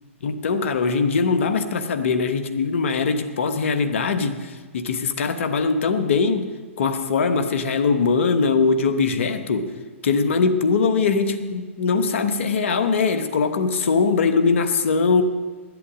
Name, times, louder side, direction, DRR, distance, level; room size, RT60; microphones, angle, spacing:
voice 1, 0.2-6.5 6.8-9.7 10.0-15.2, left 4 dB, 65° left, 9 dB, 1.1 m, -21 dB
11.0 x 8.3 x 7.4 m, 1.4 s
hypercardioid pair, 125°, 7 cm